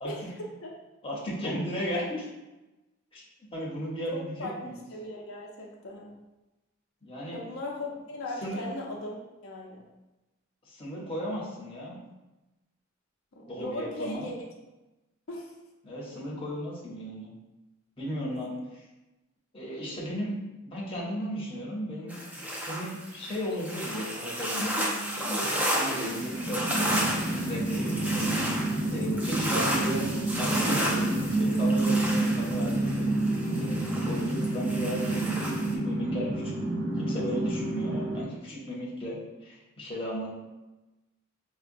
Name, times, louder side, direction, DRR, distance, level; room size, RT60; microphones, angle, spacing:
voice 1, 0.0-0.7 4.1-6.2 7.3-9.9 13.3-14.3 15.3-15.5 18.3-18.6, left 1 dB, 75° left, -2 dB, 0.6 m, -39 dB
voice 2, 1.0-2.3 3.1-3.2 3.5-4.8 7.0-7.4 8.4-8.6 10.7-12.0 13.5-14.3 15.8-17.3 18.0-18.5 19.5-20.4 20.6-28.5 28.9-33.1 33.4-36.6 37.0-40.3, equal, 25° left, -5 dB, 0.7 m, -35 dB
sound 1, 22.1-35.7, equal, 5° right, 0.4 m, -32 dB
sound 2, 26.0-38.2, right 2 dB, 50° right, 1.2 m, -29 dB
4.8 x 2.1 x 2.5 m, 1.0 s
head